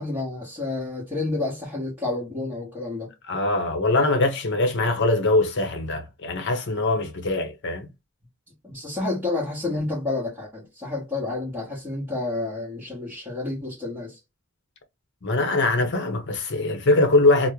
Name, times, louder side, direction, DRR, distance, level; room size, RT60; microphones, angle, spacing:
voice 1, 0.0-3.1 8.6-14.2, left 2 dB, 10° right, 1.1 m, -30 dB
voice 2, 3.3-7.9 15.2-17.5, left 2 dB, 55° left, 0.8 m, -22 dB
3.0 x 2.1 x 3.6 m
head